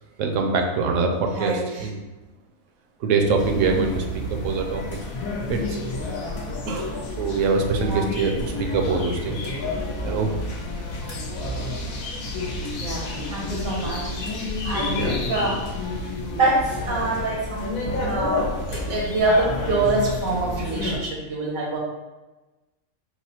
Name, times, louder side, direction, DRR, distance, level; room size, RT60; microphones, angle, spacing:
voice 1, 0.2-2.0 3.0-4.0 4.3-4.8 5.5-5.8 6.7-9.4 10.0-10.3 14.9-15.2, right 4 dB, 70° right, 3 dB, 0.9 m, -24 dB
voice 2, 1.3-1.9 7.8-8.1 12.6-14.4 14.6-15.7 16.0-21.8, right 2 dB, 85° right, -3 dB, 1.5 m, -26 dB
sound 1, 3.4-21.0, left 2 dB, 85° left, 1.3 m, -30 dB
4.7 x 2.0 x 4.3 m, 1.1 s
omnidirectional pair, 1.4 m